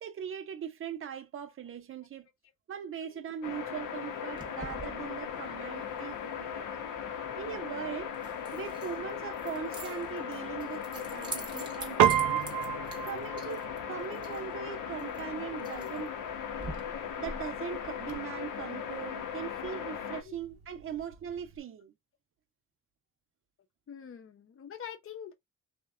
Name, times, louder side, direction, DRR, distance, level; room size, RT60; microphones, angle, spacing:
voice 1, 0.0-2.3 2.7-6.7 7.4-8.1 8.5-12.4 13.0-16.1 17.2-21.9, right 8 dB, 45° right, 0.6 m, -40 dB
sound 1, 3.4-20.2, left 8 dB, 85° left, 0.7 m, -38 dB
Keys jangling, 4.3-18.2, right 2 dB, 15° right, 0.8 m, -47 dB
Piano, 12.0-21.6, right 10 dB, 85° right, 0.6 m, -34 dB
voice 2, 23.9-25.3, left 8 dB, 45° left, 0.6 m, -45 dB
2.7 x 2.2 x 2.4 m
cardioid pair, 110°, 31 cm